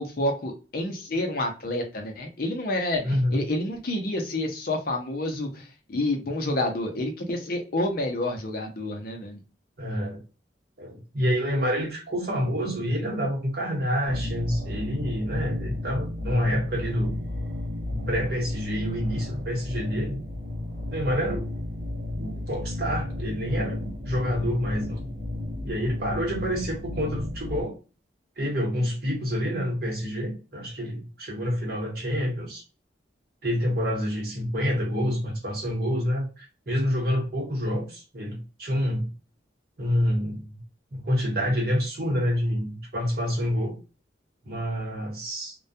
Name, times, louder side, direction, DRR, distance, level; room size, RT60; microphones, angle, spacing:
voice 1, 0.0-9.4, left 1 dB, 50° left, 4 dB, 0.5 m, -29 dB
voice 2, 3.0-3.4 9.8-10.2 10.8-17.2 17.9-20.2 20.9-21.4 22.1-25.1 25.6-27.7 28.4-32.6 33.4-39.1 39.8-40.6 40.9-43.8 44.5-45.5, equal, 55° right, -1 dB, 1.0 m, -28 dB
sound 1, 14.1-27.6, left 2 dB, 75° right, 0.6 m, -33 dB
2.2 x 2.2 x 2.6 m, 0.32 s
head